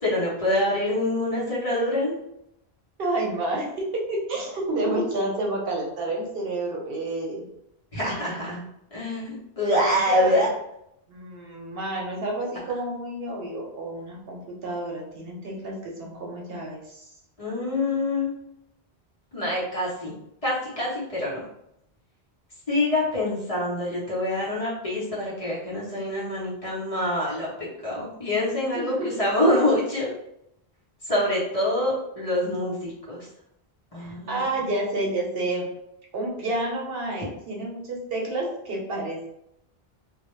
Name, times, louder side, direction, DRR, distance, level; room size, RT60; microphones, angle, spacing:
voice 1, 0.0-2.1 7.9-8.6 8.9-10.5 17.4-18.3 19.3-20.1 20.4-21.4 22.7-27.5 27.8-30.1 31.1-33.3 33.9-34.4, left 1 dB, 40° left, -7 dB, 0.8 m, -25 dB
voice 2, 3.0-7.4 9.8-10.4 11.1-17.1 28.7-29.1 34.0-35.7 36.1-39.3, right 2 dB, 65° right, -2 dB, 0.9 m, -30 dB
2.2 x 2.2 x 2.9 m, 0.79 s
omnidirectional pair, 1.1 m